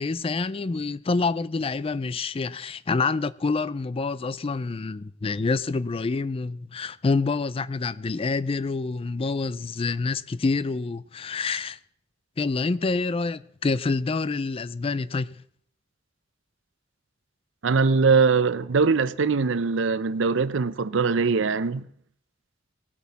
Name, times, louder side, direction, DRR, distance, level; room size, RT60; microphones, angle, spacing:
voice 1, 0.0-11.8 12.4-15.4, left 4 dB, 30° left, 0.4 m, -27 dB
voice 2, 17.6-21.9, right 4 dB, 70° right, 0.6 m, -22 dB
18.5 x 8.2 x 4.1 m
head